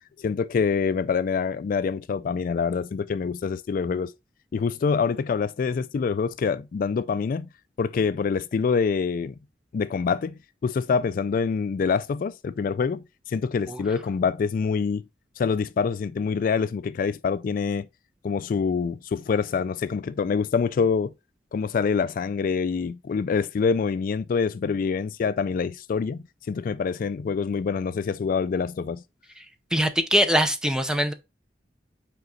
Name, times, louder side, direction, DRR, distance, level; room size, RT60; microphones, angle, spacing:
voice 1, 0.2-4.1 4.5-7.5 7.8-9.3 9.7-15.0 15.4-17.9 18.2-21.1 21.5-29.0, left 5 dB, 55° left, 0.3 m, -26 dB
voice 2, 29.7-31.1, equal, 5° right, 0.7 m, -22 dB
5.3 x 5.1 x 3.9 m
head